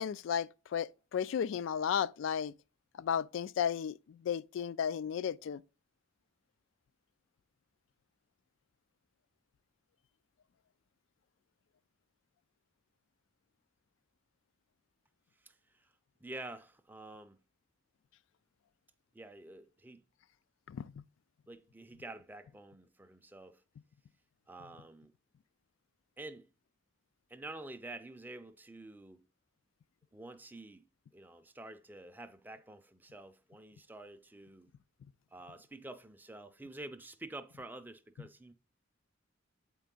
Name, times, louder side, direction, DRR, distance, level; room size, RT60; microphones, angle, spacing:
voice 1, 0.0-2.5 3.0-5.6 20.7-20.8, left 8 dB, 65° left, 0.3 m, -34 dB
voice 2, 15.4-15.9 16.2-17.4 19.1-20.0 21.5-23.6 24.5-25.1 26.2-26.5 27.3-29.2 30.1-30.9 31.1-34.7 35.3-38.5, right 2 dB, 10° right, 0.5 m, -48 dB
8.3 x 4.5 x 3.8 m
head